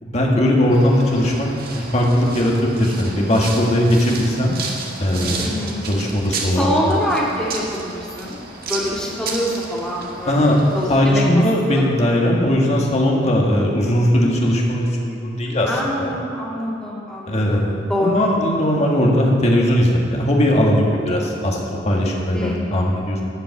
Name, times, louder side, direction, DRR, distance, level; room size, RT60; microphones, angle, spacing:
voice 1, 0.0-4.6 5.0-5.5 5.9-7.0 10.3-10.6 10.9-15.7 16.0-16.2 17.3-23.2, equal, 35° left, -1 dB, 1.8 m, -18 dB
sound 1, 0.7-11.0, right 3 dB, 55° right, 1.5 m, -32 dB
voice 2, 5.4-5.8 6.6-11.4 11.7-11.8 15.6-18.3 22.3-22.7, equal, 5° left, -7 dB, 2.6 m, -25 dB
13.0 x 5.3 x 8.4 m, 2.5 s
head